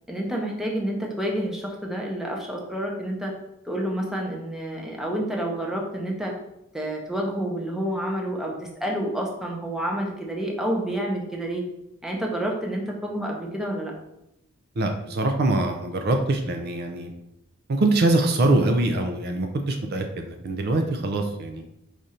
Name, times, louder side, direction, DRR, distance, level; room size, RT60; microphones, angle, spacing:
voice 1, 0.1-3.3 3.6-6.3 6.7-11.6 12.0-13.9, right 1 dB, ahead, -1 dB, 0.7 m, -29 dB
voice 2, 14.8-17.1 17.7-21.6, right 2 dB, 45° right, 5 dB, 0.4 m, -23 dB
4.9 x 2.6 x 4.2 m, 0.85 s
head